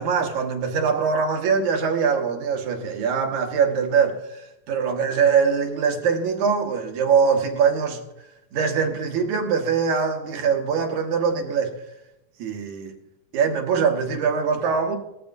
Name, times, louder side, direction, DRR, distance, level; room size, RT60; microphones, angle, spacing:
voice 1, 0.0-8.0 8.5-11.7 12.4-12.9 13.3-15.0, right 6 dB, 75° right, 2.7 m, -22 dB
19.0 x 13.0 x 2.6 m
omnidirectional pair, 3.4 m